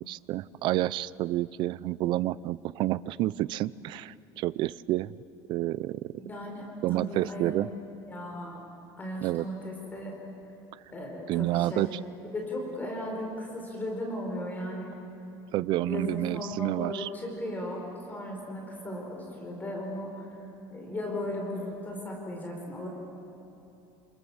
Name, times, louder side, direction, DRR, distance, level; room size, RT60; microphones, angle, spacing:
voice 1, 0.0-5.2 5.5-6.1 6.8-7.7 9.2-9.5 11.3-11.9 15.5-17.1, right 15 dB, 50° right, 19 dB, 0.6 m, -29 dB
voice 2, 6.2-7.5 8.1-8.6 9.0-10.1 10.9-11.9 12.3-15.1 15.9-20.4 20.7-22.9, left 1 dB, 15° left, 0 dB, 4.8 m, -36 dB
29.0 x 28.0 x 7.3 m, 2.9 s
cardioid pair, 155°, 10 cm